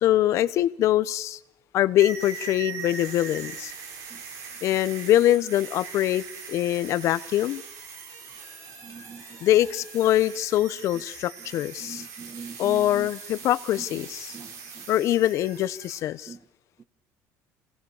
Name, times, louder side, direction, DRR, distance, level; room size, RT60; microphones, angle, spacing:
voice 1, 0.0-1.4 1.7-3.7 4.6-7.6 9.4-12.1 12.6-14.4 14.9-16.3, left 13 dB, 55° left, 0.8 m, -23 dB
sound 1, 2.0-16.0, right 5 dB, 60° right, 4.5 m, -41 dB
voice 2, 8.8-9.2 11.8-13.1 14.3-14.5 16.3-16.4, right 5 dB, 25° right, 1.1 m, -41 dB
26.0 x 17.5 x 7.1 m
cardioid pair, 140°, 6 cm